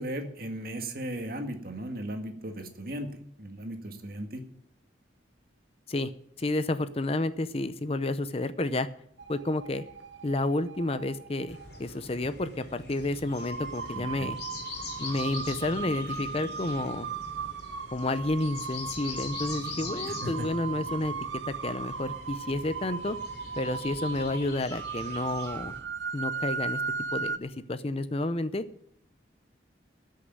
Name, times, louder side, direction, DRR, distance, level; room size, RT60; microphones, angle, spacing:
voice 1, 0.0-4.4 14.0-14.3 20.1-20.5, right 1 dB, 50° right, 5 dB, 1.9 m, -36 dB
voice 2, 6.4-8.9 9.3-9.8 10.2-14.4 15.0-17.1 17.9-21.1 21.5-23.2 23.6-25.7 26.1-26.8 27.1-28.6, left 2 dB, 30° left, 12 dB, 0.6 m, -30 dB
sound 1, 9.2-11.8 12.6-12.7 13.3-27.4, right 5 dB, 80° right, 1.1 m, -37 dB
sound 2, 11.5-25.8, left 3 dB, 55° left, 3.5 m, -43 dB
13.5 x 6.6 x 9.3 m, 0.72 s
head